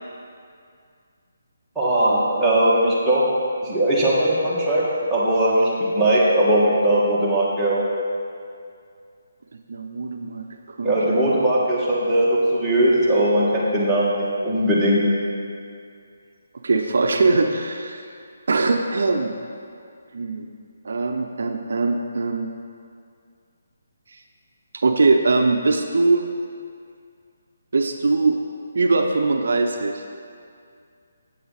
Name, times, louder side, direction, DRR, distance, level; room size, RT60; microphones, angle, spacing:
voice 1, 1.8-3.2 3.6-4.8 5.1-7.8 10.8-15.0, right 1 dB, ahead, -12 dB, 1.8 m, -19 dB
voice 2, 9.7-11.2 16.6-18.0 18.5-19.3 20.1-20.5 20.8-22.5 24.7-26.2 27.7-28.4 28.7-30.0, right 3 dB, 70° right, 4 dB, 0.7 m, -21 dB
8.5 x 8.4 x 4.0 m, 2.3 s
hypercardioid pair, 160°, 0 cm